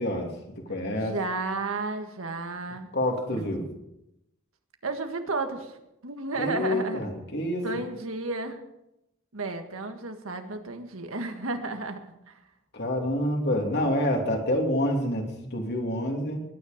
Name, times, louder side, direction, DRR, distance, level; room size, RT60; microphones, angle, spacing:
voice 1, 0.0-1.2 2.9-3.7 6.3-7.7 12.7-16.4, left 1 dB, 55° left, 2 dB, 2.9 m, -27 dB
voice 2, 0.9-2.9 3.3-3.5 4.8-5.8 6.0-7.0 7.6-8.6 9.3-12.0 12.3-12.4, right 3 dB, 80° right, 5 dB, 1.8 m, -32 dB
20.0 x 10.0 x 5.2 m, 0.86 s
head